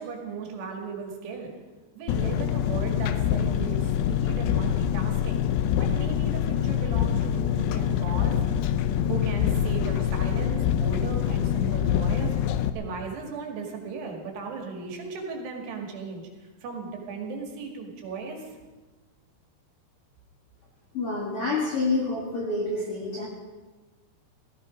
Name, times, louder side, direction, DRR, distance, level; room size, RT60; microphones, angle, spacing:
voice 1, 0.0-1.5 1.9-5.5 5.8-8.4 8.9-12.3 12.7-16.2 16.6-18.5, right 4 dB, 70° right, 1 dB, 4.1 m, -36 dB
Engine, 2.1-12.7, left 9 dB, 80° left, 2.8 m, -25 dB
voice 2, 20.9-23.3, left 3 dB, 45° left, -3 dB, 2.1 m, -28 dB
16.5 x 15.0 x 5.2 m, 1.3 s
omnidirectional pair, 5.0 m